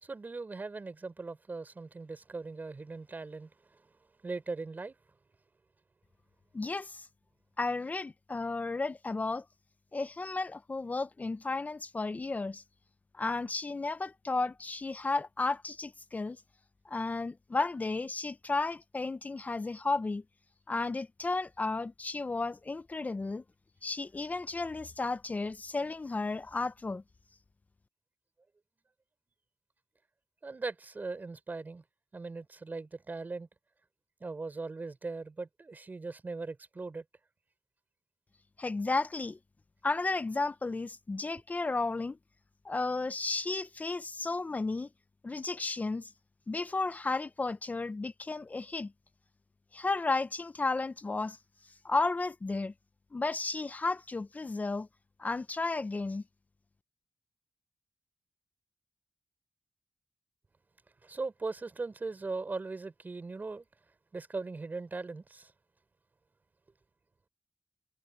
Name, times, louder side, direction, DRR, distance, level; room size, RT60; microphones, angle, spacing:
voice 1, 0.0-3.5 4.2-5.0 30.4-31.8 32.1-33.5 34.2-37.0 61.0-63.7 64.1-65.5, right 3 dB, 45° right, 5.1 m, -39 dB
voice 2, 6.5-7.1 7.6-9.4 9.9-12.6 13.1-16.4 16.8-20.2 20.7-23.4 23.8-27.0 38.6-39.4 39.8-42.2 42.6-44.9 45.2-46.1 46.5-48.9 49.7-51.4 51.8-52.7 53.1-54.9 55.2-56.2, left 3 dB, 40° left, 1.0 m, -33 dB
cardioid pair, 45°, 4 cm